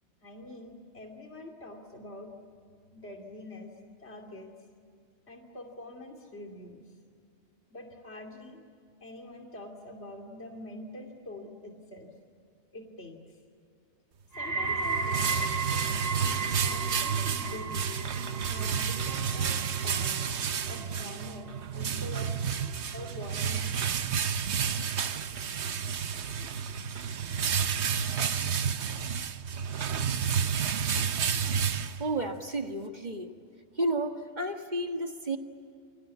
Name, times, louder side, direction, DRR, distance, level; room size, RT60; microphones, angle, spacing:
voice 1, 0.2-2.3 2.9-3.7 4.0-4.5 5.3-6.9 7.7-8.6 9.0-12.1 12.7-13.2 14.4-15.5 15.7-18.0 18.5-20.4 20.7-22.3 22.9-24.1, left 1 dB, 70° left, 2 dB, 3.0 m, -45 dB
sound 1, 14.3-25.5 25.8-26.3 27.0-27.1, right 4 dB, 60° right, 3.5 m, -36 dB
sound 2, 14.5-32.4, right 7 dB, 75° right, 1.2 m, -31 dB
voice 2, 32.0-33.3 33.8-35.4, right 1 dB, 40° right, 5 dB, 1.7 m, -31 dB
29.0 x 24.0 x 8.4 m, 2.3 s
omnidirectional pair, 1.2 m